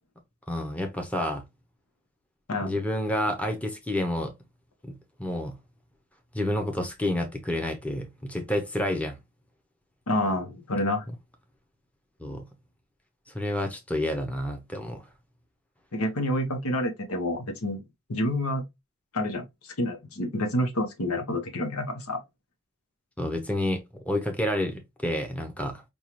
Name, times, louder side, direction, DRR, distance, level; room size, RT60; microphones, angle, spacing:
voice 1, 0.5-1.4 2.6-4.3 4.8-5.6 6.3-9.2 12.2-12.5 13.3-15.0 23.2-25.8, left 1 dB, 5° left, 0.6 m, -29 dB
voice 2, 10.1-11.1 15.9-17.8 18.1-18.7 19.1-22.2, left 1 dB, 85° left, 1.0 m, -28 dB
5.4 x 2.3 x 3.0 m
head